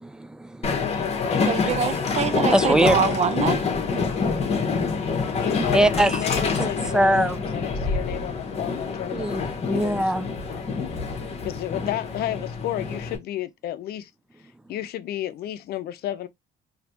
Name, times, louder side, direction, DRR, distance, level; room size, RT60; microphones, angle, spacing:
voice 1, 0.0-0.8 2.5-3.0 5.7-6.7 6.9-7.4 9.1-10.3, right 1 dB, 5° right, 0.3 m, -22 dB
Train, 0.6-13.2, left 4 dB, 40° left, 1.5 m, -26 dB
voice 2, 0.7-1.5 2.9-3.1 5.3-9.3 9.6-10.1 11.4-14.1 14.7-16.3, left 13 dB, 65° left, 0.6 m, -32 dB
voice 3, 1.5-3.7, right 7 dB, 40° right, 0.7 m, -25 dB
4.1 x 2.9 x 2.9 m
cardioid pair, 110°, 17 cm